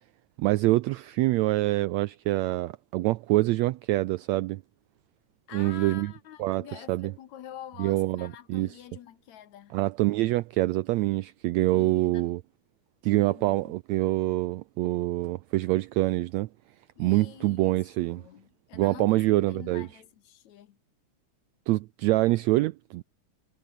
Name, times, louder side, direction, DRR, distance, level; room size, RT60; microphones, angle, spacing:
voice 1, 0.4-4.6 5.5-6.1 6.4-6.6 6.9-7.1 7.8-8.7 9.7-12.4 13.0-16.5 17.0-18.2 18.7-19.9 21.7-23.0, right 18 dB, 90° right, 1.6 m, -25 dB
voice 2, 5.5-9.8 11.7-12.3 13.1-13.7 17.0-20.8, left 11 dB, 65° left, 2.4 m, -46 dB
omnidirectional pair, 3.7 m